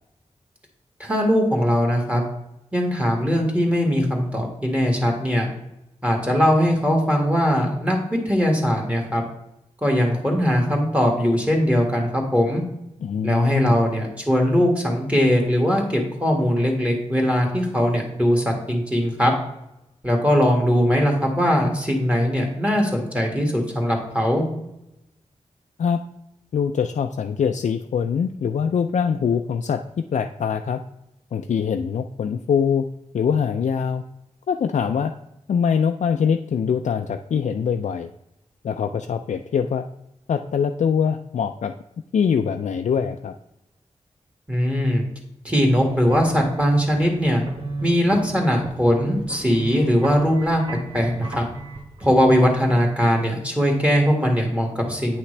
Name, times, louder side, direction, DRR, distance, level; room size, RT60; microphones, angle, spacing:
voice 1, 1.0-2.2 2.7-5.5 6.0-8.0 8.3-9.2 9.8-12.6 13.2-19.3 20.0-24.4 44.5-45.0 45.4-47.4 47.8-50.6 50.9-51.4 52.0-55.2, equal, 10° right, 1 dB, 1.8 m, -20 dB
voice 2, 13.0-13.8 25.8-26.0 26.5-29.8 30.1-30.8 31.3-32.8 33.1-34.0 34.5-35.1 35.5-38.1 38.6-39.8 40.3-41.7 42.1-43.3, left 7 dB, 75° left, 5 dB, 0.4 m, -23 dB
sound 1, 45.8-52.4, right 2 dB, 40° right, 1.4 m, -35 dB
8.9 x 5.8 x 3.3 m, 0.85 s
wide cardioid pair, 90°, 12 cm